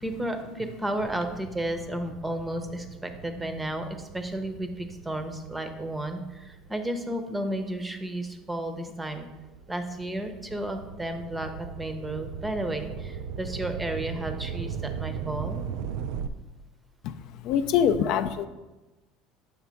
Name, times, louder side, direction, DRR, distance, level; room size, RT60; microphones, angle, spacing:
voice 1, 0.0-9.3 9.7-15.7, right 1 dB, 10° right, 7 dB, 0.6 m, -33 dB
sound 1, 1.0-7.7 8.3-16.3, right 7 dB, 75° right, 0.3 m, -38 dB
voice 2, 17.4-18.5, left 8 dB, 60° left, 10 dB, 0.3 m, -24 dB
6.1 x 3.4 x 5.6 m, 1.1 s
cardioid pair, 130°, 0 cm